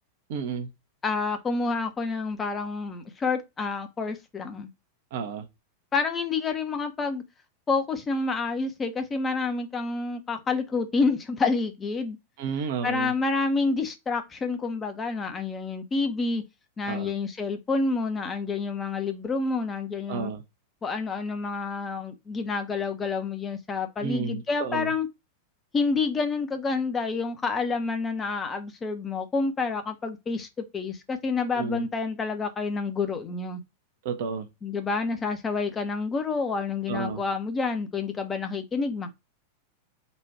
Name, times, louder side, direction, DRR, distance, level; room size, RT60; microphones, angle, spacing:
voice 1, 0.3-0.7 5.1-5.5 12.4-13.1 16.9-17.1 20.1-20.4 24.0-24.9 31.6-31.9 34.0-34.5 36.9-37.2, right 6 dB, 50° right, 0.8 m, -31 dB
voice 2, 1.0-4.7 5.9-7.2 7.7-12.2 12.8-16.4 16.8-20.3 20.8-25.1 25.7-33.6 34.6-39.1, left 4 dB, 20° left, 0.8 m, -28 dB
4.1 x 2.5 x 4.6 m
figure-of-eight pair, 90°, 0 cm